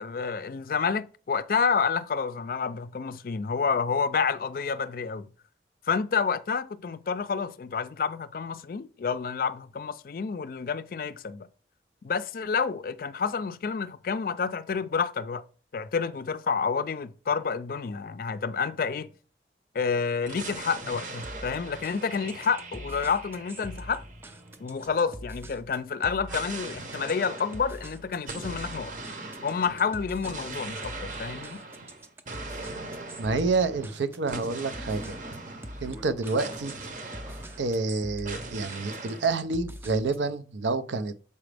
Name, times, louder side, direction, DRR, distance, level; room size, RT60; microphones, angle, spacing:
voice 1, 0.0-5.3 5.9-11.5 12.0-15.4 15.7-19.1 19.7-24.0 24.6-28.9 29.4-31.6, left 5 dB, 50° left, 0.4 m, -29 dB
sound 1, 20.3-25.0 26.3-37.9 38.3-39.3, right 3 dB, 45° right, 0.9 m, -41 dB
sound 2, 21.2-40.3, equal, 15° right, 0.4 m, -44 dB
voice 2, 33.2-35.2 35.8-36.7 37.6-41.1, right 3 dB, 85° right, 0.6 m, -28 dB
6.9 x 4.9 x 3.3 m
head